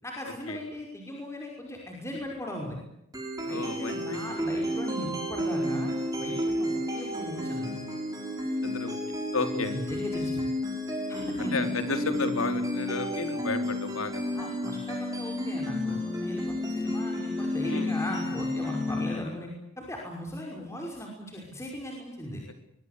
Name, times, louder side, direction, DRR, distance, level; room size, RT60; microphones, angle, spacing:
voice 1, 0.0-2.8 3.4-5.9 6.2-7.8 9.5-10.5 11.1-11.6 14.3-19.5 19.8-22.4, left 1 dB, 15° left, 0 dB, 5.5 m, -38 dB
sound 1, 3.1-19.1, left 1 dB, 15° right, 6.9 m, -31 dB
voice 2, 3.5-4.2 8.6-9.0 9.3-9.7 11.4-14.2 17.6-17.9, left 3 dB, 70° left, 7 dB, 4.1 m, -32 dB
24.0 x 23.5 x 8.3 m, 0.80 s
head